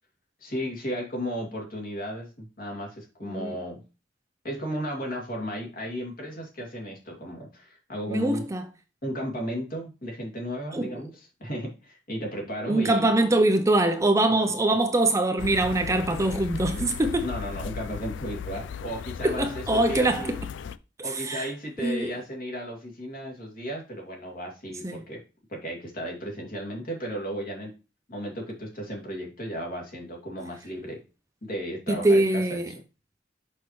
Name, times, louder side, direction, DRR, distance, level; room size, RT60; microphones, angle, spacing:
voice 1, 0.4-3.8 4.4-8.4 9.0-13.1 16.7-16.9 17.2-20.3 21.0-25.2 25.5-27.7 28.1-31.0 31.4-32.6, equal, 50° left, 2.5 m, -34 dB
voice 2, 8.1-8.6 10.7-11.0 12.7-17.2 19.2-20.4 21.0-21.5 21.8-22.1 24.8-25.0 31.9-32.7, right 2 dB, 15° right, 0.5 m, -23 dB
sound 1, 15.4-20.8, left 7 dB, 80° left, 0.3 m, -36 dB
6.1 x 5.8 x 3.1 m
head